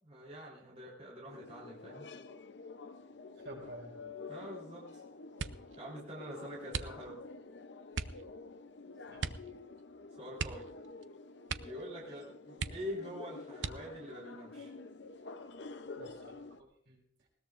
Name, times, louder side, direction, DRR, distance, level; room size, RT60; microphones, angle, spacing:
voice 1, 0.0-2.0 4.3-5.0 5.8-7.2 10.1-10.7 11.6-14.7, equal, 35° right, -4 dB, 3.8 m, -45 dB
sound 1, 1.3-16.6, left 3 dB, 70° left, 0.7 m, -49 dB
voice 2, 3.3-4.1 9.1-9.3 12.1-12.2 16.0-17.3, right 1 dB, 70° right, -1 dB, 5.5 m, -51 dB
sound 2, 5.3-5.8 6.7-7.3 7.9-8.2 9.2-9.5 9.8-9.9 10.3-11.1 11.4-11.9 12.2-12.3 12.6-13.1 13.6-14.1 14.8-15.4 15.8-16.2, right 5 dB, 85° right, 0.6 m, -40 dB
20.5 x 18.5 x 2.5 m, 0.70 s
head